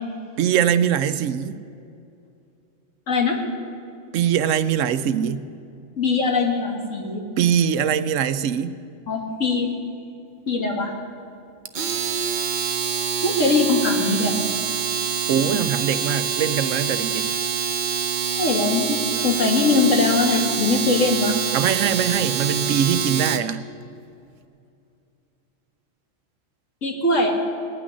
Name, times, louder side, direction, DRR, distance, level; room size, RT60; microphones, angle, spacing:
voice 1, 0.4-1.6 4.1-5.5 7.4-8.8 15.3-17.3 21.5-23.6, right 8 dB, 80° right, 1.0 m, -22 dB
voice 2, 3.1-3.4 6.0-7.2 9.1-9.7 10.5-10.9 13.2-14.4 18.3-21.4 26.8-27.4, left 3 dB, 80° left, 2.2 m, -21 dB
Domestic sounds home sounds, 11.6-23.5, right 7 dB, 45° right, 0.7 m, -25 dB
18.0 x 6.2 x 9.8 m
omnidirectional pair, 1.3 m